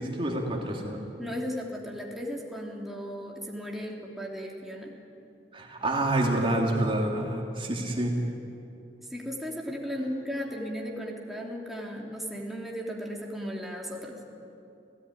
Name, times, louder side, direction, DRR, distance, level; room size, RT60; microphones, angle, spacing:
voice 1, 0.0-1.0 5.5-8.2, right 1 dB, 30° right, 0 dB, 2.6 m, -28 dB
voice 2, 1.2-4.9 9.1-14.2, equal, ahead, -2 dB, 2.9 m, -36 dB
28.5 x 17.0 x 9.8 m, 2.8 s
head